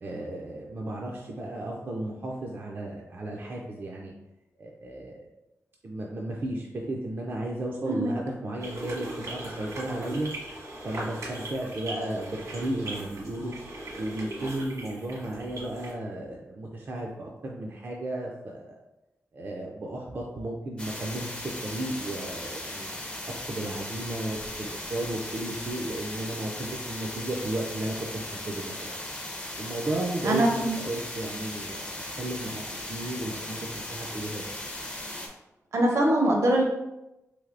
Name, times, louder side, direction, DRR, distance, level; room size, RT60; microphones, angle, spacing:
voice 1, 0.0-4.1 4.6-5.3 5.8-10.3 10.8-13.5 14.0-18.8 19.3-22.9 23.3-28.9 29.6-32.6 32.9-34.5, right 1 dB, 40° right, -1 dB, 0.3 m, -34 dB
voice 2, 7.9-8.2 30.2-30.8 35.7-36.6, right 1 dB, 70° right, 0 dB, 0.7 m, -23 dB
sound 1, 8.6-15.9, right 1 dB, 90° right, 1.4 m, -39 dB
sound 2, 20.8-35.3, left 1 dB, 20° left, 0.5 m, -38 dB
3.2 x 3.0 x 2.5 m, 0.95 s
wide cardioid pair, 150°, 5 cm